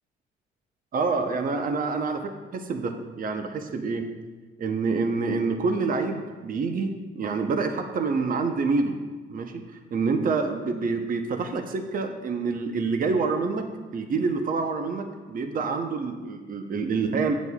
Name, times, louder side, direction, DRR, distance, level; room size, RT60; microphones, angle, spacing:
voice 1, 0.9-4.1 4.6-9.0 9.3-9.6 9.9-13.7 13.9-17.3, right 4 dB, 45° right, 6 dB, 0.7 m, -27 dB
9.0 x 8.1 x 2.3 m, 1.3 s
cardioid pair, 90°, 20 cm